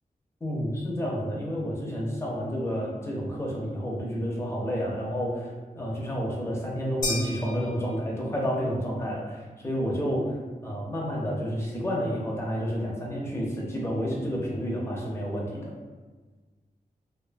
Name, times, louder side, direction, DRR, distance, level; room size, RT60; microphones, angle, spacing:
voice 1, 0.4-5.5 5.7-10.3 10.6-15.7, equal, 15° left, -3 dB, 0.6 m, -30 dB
sound 1, 7.0-8.5, left 2 dB, 60° left, 0.6 m, -34 dB
2.4 x 2.3 x 2.5 m, 1.3 s
wide cardioid pair, 135°, 15 cm